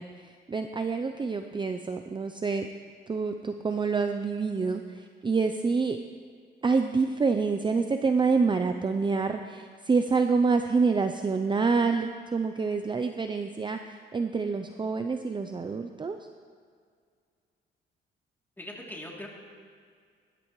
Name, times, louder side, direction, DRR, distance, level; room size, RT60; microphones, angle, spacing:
voice 1, 0.0-2.7 3.1-6.0 6.6-16.2, right 4 dB, 25° right, 7 dB, 0.6 m, -27 dB
voice 2, 18.6-19.3, left 1 dB, 10° left, -3 dB, 3.0 m, -40 dB
20.0 x 11.5 x 3.2 m, 2.1 s
cardioid pair, 90°, 20 cm